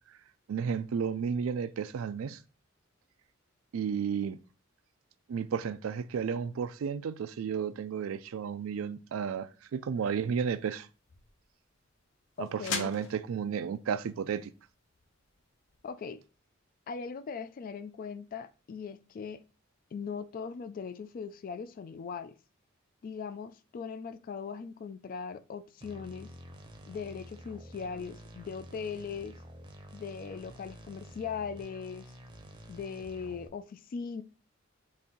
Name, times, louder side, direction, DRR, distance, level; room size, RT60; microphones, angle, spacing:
voice 1, 0.5-2.4 3.7-4.4 5.3-10.9 12.4-14.5, right 7 dB, 80° right, 0.4 m, -33 dB
sound 1, 10.0-15.9, left 5 dB, 70° left, 0.7 m, -44 dB
voice 2, 12.4-12.9 15.8-16.2 16.9-19.4 19.9-22.4 23.0-26.3 26.9-29.3 29.9-32.1 32.7-34.2, left 6 dB, 45° left, 0.3 m, -39 dB
sound 2, 25.8-33.5, equal, 25° right, 0.6 m, -49 dB
4.1 x 2.6 x 3.7 m
head